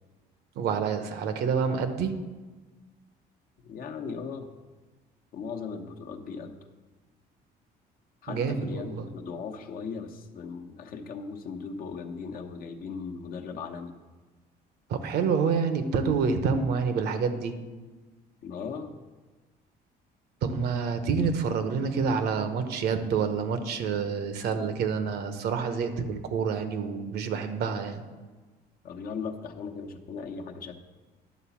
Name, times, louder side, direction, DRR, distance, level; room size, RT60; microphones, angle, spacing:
voice 1, 0.5-2.1 8.3-9.1 14.9-17.6 20.4-28.0, right 5 dB, 75° right, 8 dB, 0.9 m, -28 dB
voice 2, 3.6-4.5 5.3-6.6 8.2-13.9 18.4-19.0 28.8-30.7, left 5 dB, 60° left, 4 dB, 0.9 m, -38 dB
10.5 x 4.0 x 7.1 m, 1.3 s
cardioid pair, 110°, 17 cm